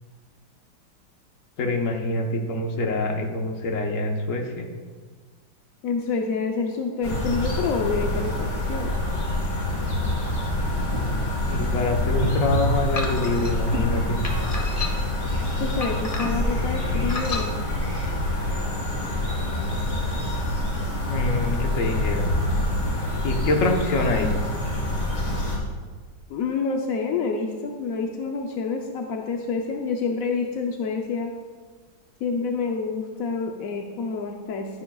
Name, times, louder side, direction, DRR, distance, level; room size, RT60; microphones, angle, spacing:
voice 1, 1.6-4.7 11.5-14.2 21.0-22.3 23.2-24.3, left 2 dB, 50° left, 2 dB, 1.2 m, -25 dB
voice 2, 5.8-8.9 15.3-17.7 26.3-31.3 32.2-34.7, left 4 dB, 65° left, 2 dB, 0.8 m, -28 dB
sound 1, 7.0-25.6, left 1 dB, 80° left, 3.9 m, -26 dB
sound 2, 13.0-13.5 14.2-15.2 15.8-16.5 17.1-17.5, left 3 dB, 25° left, 0.8 m, -32 dB
12.5 x 10.5 x 2.3 m, 1.5 s
omnidirectional pair, 2.2 m